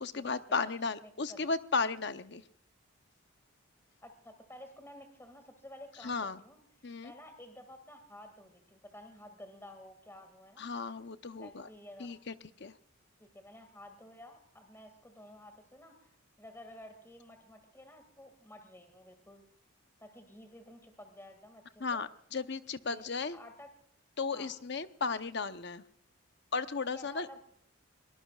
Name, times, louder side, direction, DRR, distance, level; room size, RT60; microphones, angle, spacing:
voice 1, 0.0-2.4 6.0-6.4 6.8-7.1 10.6-11.7 12.0-12.3 12.6-12.7 21.8-23.4 24.2-25.8 26.5-27.3, left 4 dB, 50° left, 10 dB, 0.8 m, -35 dB
voice 2, 1.0-1.4 4.0-6.6 7.0-10.7 11.4-12.2 13.2-16.1 16.4-19.4 20.0-22.0 22.9-23.7 24.3-24.5 26.9-27.4, left 1 dB, 10° left, 7 dB, 2.1 m, -52 dB
23.0 x 19.5 x 2.4 m, 0.65 s
head